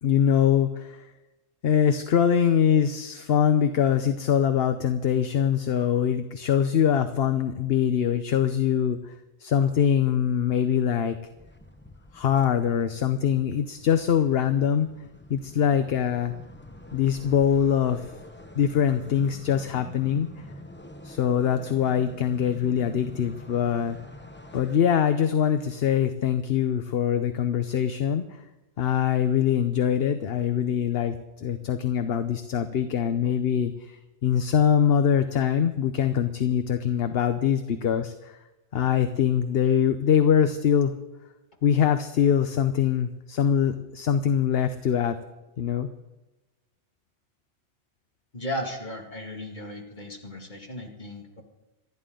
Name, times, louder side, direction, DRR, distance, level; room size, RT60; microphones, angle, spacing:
voice 1, 0.0-1.1 1.6-9.1 9.4-11.2 12.1-14.9 15.3-16.3 16.9-18.1 18.5-20.4 21.0-24.0 24.5-28.4 28.8-38.4 38.7-40.9 41.6-45.2 45.6-45.9, left 8 dB, 60° left, 9 dB, 1.0 m, -23 dB
sound 1, 11.2-24.8, left 1 dB, 10° left, 0.9 m, -46 dB
voice 2, 48.3-51.4, left 1 dB, 40° left, 1 dB, 2.5 m, -35 dB
26.5 x 11.0 x 3.8 m, 1.0 s
omnidirectional pair, 1.2 m